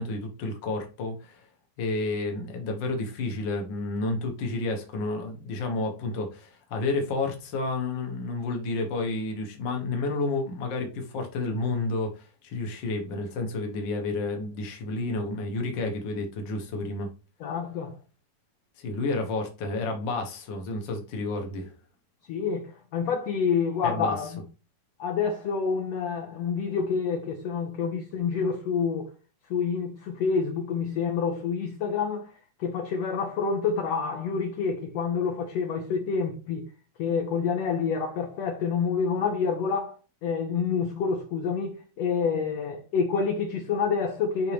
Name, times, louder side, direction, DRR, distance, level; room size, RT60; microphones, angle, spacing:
voice 1, 0.0-1.5 1.8-17.1 18.8-21.7 23.8-24.2, left 3 dB, 50° left, 1.4 m, -30 dB
voice 2, 17.4-17.9 22.3-24.4 25.0-29.1 29.5-32.3 32.6-36.6 37.0-44.5, left 5 dB, 70° left, 1.7 m, -28 dB
10.5 x 3.8 x 3.4 m
omnidirectional pair, 4.0 m